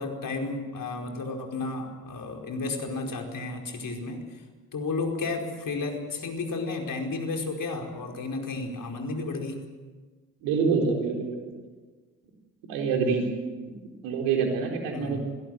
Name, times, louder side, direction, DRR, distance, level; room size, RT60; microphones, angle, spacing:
voice 1, 0.0-4.2 4.7-9.6 14.9-15.2, left 3 dB, 50° left, 2 dB, 4.9 m, -32 dB
voice 2, 10.4-11.5 12.6-13.3 14.0-15.2, right 5 dB, 80° right, 2 dB, 4.3 m, -26 dB
25.5 x 17.5 x 7.9 m, 1.4 s
hypercardioid pair, 45°, 41 cm